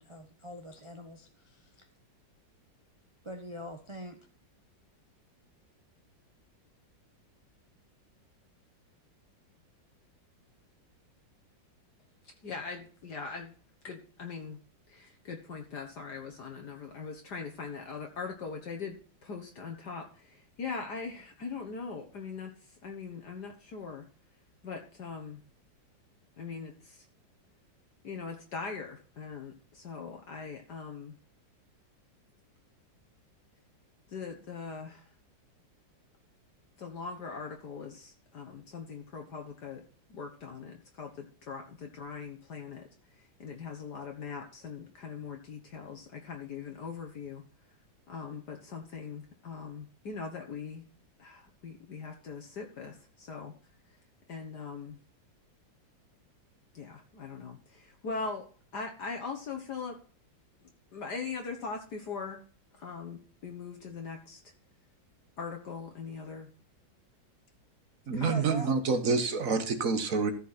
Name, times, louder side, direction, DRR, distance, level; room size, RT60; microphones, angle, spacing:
voice 1, 0.0-1.9 3.2-4.2 68.2-68.7, equal, 20° right, 4 dB, 0.8 m, -43 dB
voice 2, 12.4-13.5 13.8-14.6 14.9-19.0 19.2-22.5 22.8-24.1 24.6-25.4 26.4-27.1 28.0-31.2 34.1-35.1 36.8-39.8 40.1-42.8 43.2-47.4 48.1-50.9 51.2-53.5 54.3-55.0 56.7-58.4 58.7-60.0 60.9-62.4 62.8-64.4 65.4-66.5 68.1-68.5, left 5 dB, 60° left, 3 dB, 1.9 m, -41 dB
voice 3, 68.1-70.3, right 4 dB, 45° right, 9 dB, 1.6 m, -27 dB
14.0 x 5.8 x 4.2 m, 0.42 s
omnidirectional pair, 2.1 m